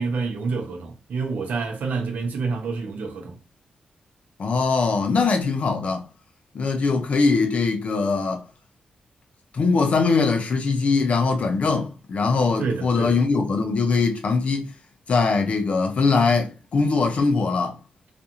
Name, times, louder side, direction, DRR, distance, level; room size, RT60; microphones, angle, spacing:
voice 1, 0.0-3.4 12.6-13.2, right 4 dB, 75° right, 0.6 m, -28 dB
voice 2, 4.4-6.1 6.5-8.4 9.5-14.7 15.1-17.8, left 4 dB, 50° left, 0.4 m, -21 dB
2.5 x 2.4 x 2.8 m
wide cardioid pair, 160°, 3 cm